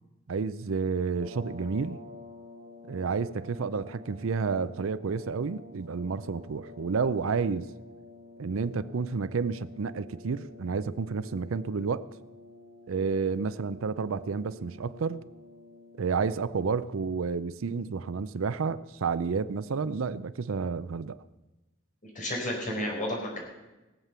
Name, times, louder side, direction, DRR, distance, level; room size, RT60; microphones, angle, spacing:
voice 1, 0.3-2.0 2.9-7.7 8.4-12.1 12.9-15.2 16.0-21.2, right 5 dB, 80° right, 0.5 m, -30 dB
sound 1, 1.1-16.2, left 2 dB, 35° right, 2.9 m, -49 dB
voice 2, 22.0-23.4, left 1 dB, 40° left, 4.7 m, -32 dB
18.5 x 7.5 x 6.9 m
head